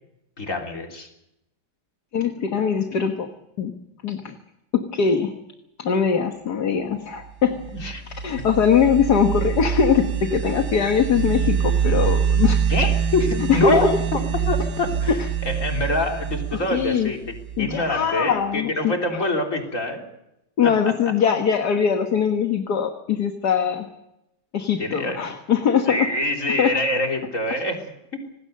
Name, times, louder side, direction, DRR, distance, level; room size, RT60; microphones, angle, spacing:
voice 1, 0.4-1.1 7.7-8.0 8.4-8.5 12.7-15.1 15.4-20.0 20.6-20.9 24.8-25.3 25.8-28.2, left 2 dB, 45° left, 2 dB, 4.0 m, -25 dB
voice 2, 2.1-3.3 3.6-3.7 4.0-4.4 4.7-5.3 5.8-7.6 8.2-12.6 13.5-13.9 15.1-15.2 16.7-17.1 17.6-18.9 20.6-23.9 24.5-26.1 26.6-26.7, left 7 dB, 70° left, 5 dB, 2.0 m, -21 dB
sound 1, 7.4-18.0, right 8 dB, 75° right, 2.0 m, -25 dB
26.0 x 19.5 x 6.6 m, 0.86 s
omnidirectional pair, 1.8 m